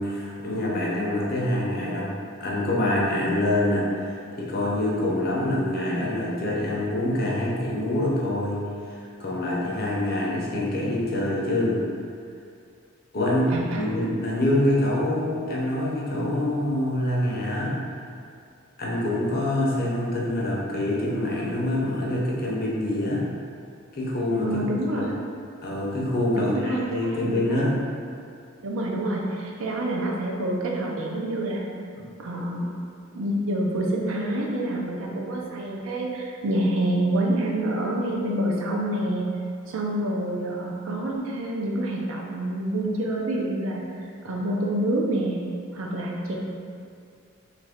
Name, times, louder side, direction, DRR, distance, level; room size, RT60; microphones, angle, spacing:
voice 1, 0.0-2.1 2.4-11.8 13.1-17.7 18.8-23.2 23.9-24.6 24.9-25.1 25.6-27.7, left 1 dB, 45° left, -4 dB, 0.6 m, -25 dB
voice 2, 13.5-13.8 24.4-25.2 26.4-27.7 28.6-31.6 32.2-32.7 33.1-39.3 39.7-43.8 44.2-45.4 45.7-46.4, right 1 dB, 75° right, -2 dB, 0.5 m, -27 dB
3.1 x 2.4 x 3.5 m, 2.3 s
head